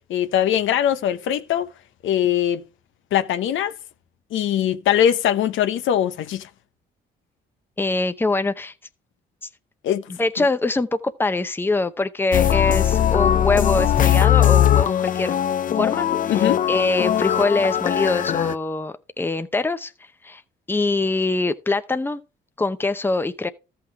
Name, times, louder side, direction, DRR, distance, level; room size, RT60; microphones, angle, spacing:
voice 1, 0.1-1.7 2.0-2.6 3.1-3.7 4.3-6.5 9.8-10.0 16.3-16.6, left 10 dB, 75° left, 0.8 m, -21 dB
voice 2, 7.8-8.7 10.1-15.4 15.8-19.9 20.2-20.4 20.7-22.2 22.6-23.5, left 3 dB, 10° left, 0.7 m, -23 dB
sound 1, 12.3-18.5, left 10 dB, 45° left, 0.4 m, -19 dB
13.5 x 5.9 x 3.4 m
cardioid pair, 90°, 20 cm